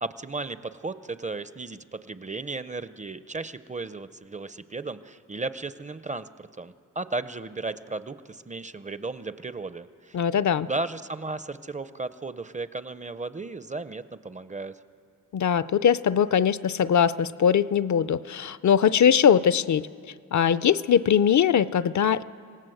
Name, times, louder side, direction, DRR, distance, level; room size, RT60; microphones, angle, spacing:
voice 1, 0.0-10.2 10.6-14.8, right 3 dB, 25° right, 13 dB, 0.5 m, -35 dB
voice 2, 10.1-10.7 15.3-19.9 20.3-22.2, left 8 dB, 60° left, 16 dB, 0.5 m, -21 dB
27.0 x 18.0 x 7.7 m, 2.3 s
wide cardioid pair, 165°, 32 cm